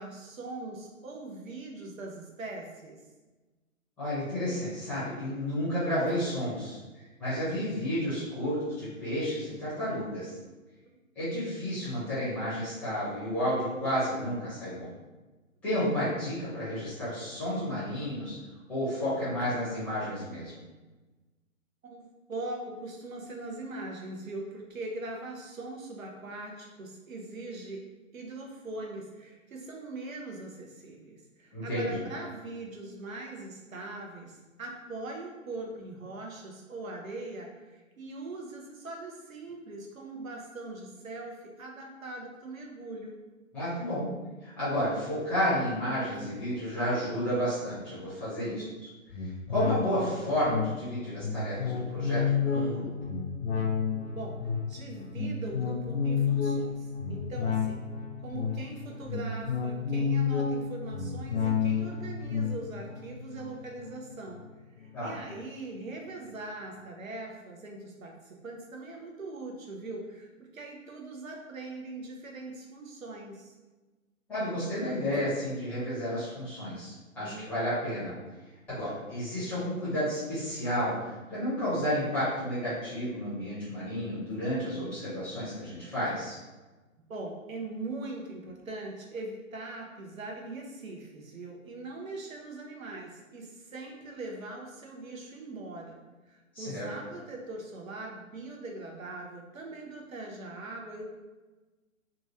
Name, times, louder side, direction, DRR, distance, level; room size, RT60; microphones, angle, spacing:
voice 1, 0.0-3.0 21.8-27.8 28.1-43.2 48.4-48.8 54.2-57.9 58.2-64.4 64.8-73.5 77.2-77.5 87.1-96.0 96.3-101.0, right 2 dB, 75° right, 0 dB, 0.8 m, -41 dB
voice 2, 4.0-10.3 11.1-14.9 15.6-18.3 18.7-20.6 31.5-32.0 43.5-44.1 44.4-48.5 49.2-52.9 64.9-65.1 74.3-78.1 78.7-80.9 81.3-86.4 96.5-96.8, equal, 5° left, -12 dB, 0.7 m, -31 dB
sound 1, 49.1-64.9 65.3-65.4, left 6 dB, 55° left, 0.5 m, -31 dB
2.9 x 2.3 x 2.8 m, 1.2 s
figure-of-eight pair, 135°, 41 cm